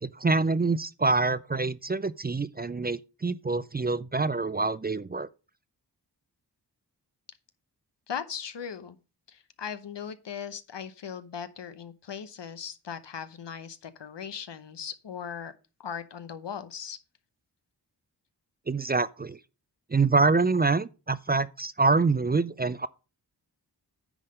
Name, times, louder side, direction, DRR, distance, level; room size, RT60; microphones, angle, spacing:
voice 1, 0.0-5.3 18.7-19.4 19.9-22.9, right 3 dB, 25° right, 0.4 m, -26 dB
voice 2, 8.1-9.0 9.3-15.5 15.8-17.0, left 7 dB, 90° left, 0.9 m, -38 dB
9.8 x 3.7 x 6.5 m
wide cardioid pair, 95°, 41 cm